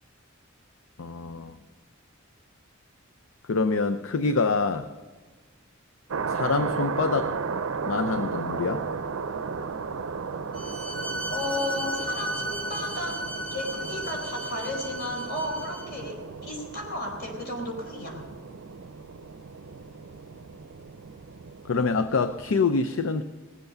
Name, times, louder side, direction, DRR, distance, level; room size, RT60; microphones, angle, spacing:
voice 1, 1.0-1.6 3.5-4.9 6.3-7.3 7.9-8.8 21.7-23.2, left 4 dB, 70° left, 10 dB, 0.5 m, -25 dB
sound 1, 6.1-22.6, right 5 dB, 80° right, 0.5 m, -35 dB
Bowed string instrument, 10.5-16.0, right 1 dB, 25° left, 1.7 m, -35 dB
voice 2, 11.3-13.2 13.5-18.2, left 1 dB, 50° left, 1 dB, 4.2 m, -34 dB
19.0 x 8.0 x 6.8 m, 1.3 s
head